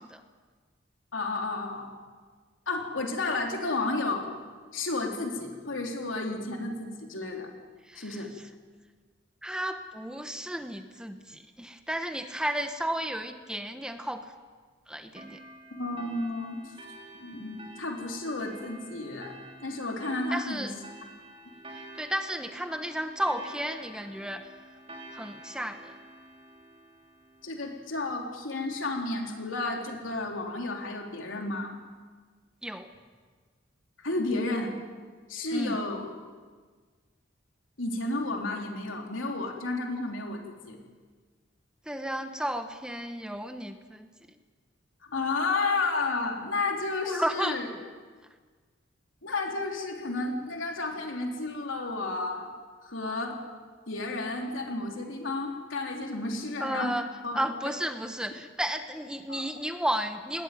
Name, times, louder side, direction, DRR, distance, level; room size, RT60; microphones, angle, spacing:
voice 1, 1.1-1.9 2.7-4.3 4.7-7.5 8.0-8.3 15.7-16.6 17.1-19.3 19.6-20.7 27.4-31.8 34.0-34.8 35.3-36.1 37.8-40.8 45.1-47.7 49.2-52.5 52.9-53.4 53.9-56.9 57.2-57.4 59.3-59.4, left 2 dB, 85° left, 1 dB, 3.6 m, -32 dB
voice 2, 7.9-8.2 9.4-14.3 14.9-15.4 20.3-20.7 22.0-24.5 25.1-25.9 32.6-32.9 35.5-35.8 41.9-44.1 47.1-47.6 56.6-60.4, right 1 dB, 5° right, 7 dB, 1.0 m, -33 dB
sound 1, 15.2-28.2, right 1 dB, 30° right, 3.6 m, -49 dB
20.0 x 17.0 x 9.2 m, 1.5 s
head